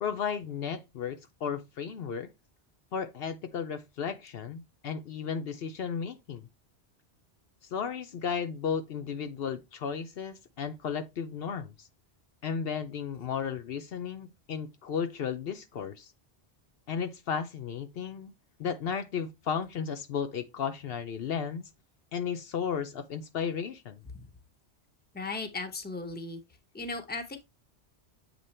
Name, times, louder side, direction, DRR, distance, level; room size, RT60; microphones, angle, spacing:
voice 1, 0.0-2.3 2.9-6.5 7.7-11.7 12.4-16.1 16.9-18.3 18.6-21.7 22.1-24.0, left 7 dB, 70° left, 0.9 m, -34 dB
voice 2, 25.1-26.4 26.7-27.4, left 3 dB, 10° left, 0.8 m, -37 dB
7.7 x 2.9 x 4.2 m
omnidirectional pair, 1.1 m